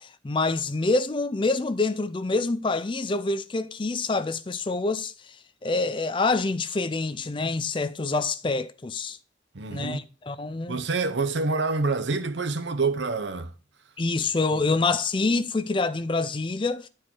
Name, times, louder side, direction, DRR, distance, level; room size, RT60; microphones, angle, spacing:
voice 1, 0.0-5.1 5.6-9.2 9.7-10.8 14.0-16.9, left 3 dB, 25° left, 0.4 m, -26 dB
voice 2, 9.5-10.0 10.7-13.5 14.5-14.6, right 3 dB, 70° right, 0.8 m, -27 dB
10.0 x 4.8 x 4.4 m
head